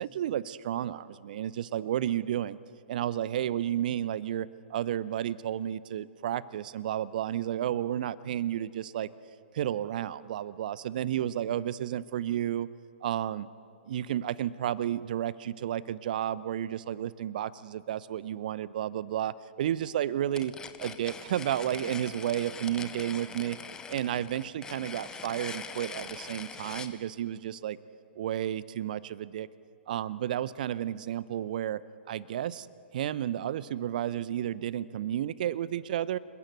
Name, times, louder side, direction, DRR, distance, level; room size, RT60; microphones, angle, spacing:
voice 1, 0.0-2.6 2.9-9.1 9.5-12.7 13.0-13.5 13.9-20.5 20.8-23.6 23.9-27.8 28.2-29.5 29.9-31.8 32.1-32.7 32.9-36.2, right 11 dB, 45° right, 18 dB, 0.8 m, -32 dB
sound 1, 20.3-26.9, left 5 dB, 10° left, 1.3 m, -42 dB
27.5 x 21.0 x 8.1 m, 2.4 s
figure-of-eight pair, 115°, 6 cm